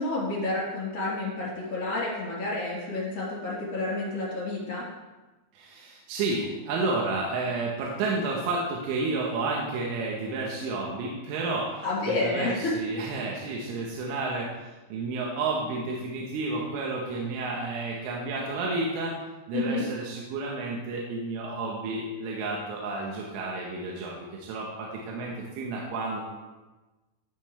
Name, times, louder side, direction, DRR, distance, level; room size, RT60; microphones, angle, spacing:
voice 1, 0.0-4.8 11.8-12.7 19.5-19.9, left 2 dB, 35° left, -7 dB, 3.9 m, -30 dB
voice 2, 5.5-14.5 14.9-19.1 19.5-24.2 24.4-26.2, right 3 dB, 75° right, -2 dB, 3.6 m, -31 dB
12.5 x 9.9 x 3.3 m, 1.2 s
omnidirectional pair, 5.9 m